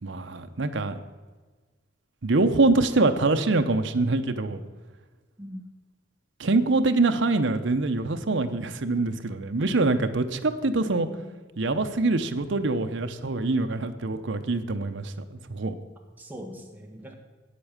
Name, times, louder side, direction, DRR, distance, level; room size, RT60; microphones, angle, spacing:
voice 1, 0.0-1.0 2.2-4.6 6.4-11.1 11.6-15.7, right 2 dB, 75° right, 8 dB, 0.8 m, -24 dB
voice 2, 10.8-11.3 16.2-17.1, equal, 10° right, 1 dB, 1.5 m, -41 dB
9.2 x 8.4 x 7.2 m, 1.3 s
head